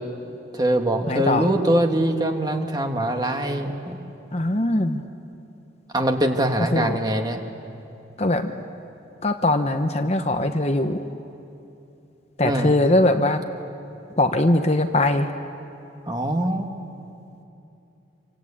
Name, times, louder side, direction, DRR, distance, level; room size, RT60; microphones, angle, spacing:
voice 1, 0.5-4.0 5.9-7.4 12.4-12.7 16.1-16.7, right 1 dB, 20° right, 4 dB, 1.8 m, -23 dB
voice 2, 1.1-1.5 4.3-5.0 6.7-7.0 8.2-8.5 9.2-11.0 12.4-13.4 14.2-15.3, left 1 dB, 35° left, 6 dB, 0.9 m, -21 dB
27.5 x 25.0 x 8.6 m, 2.8 s
head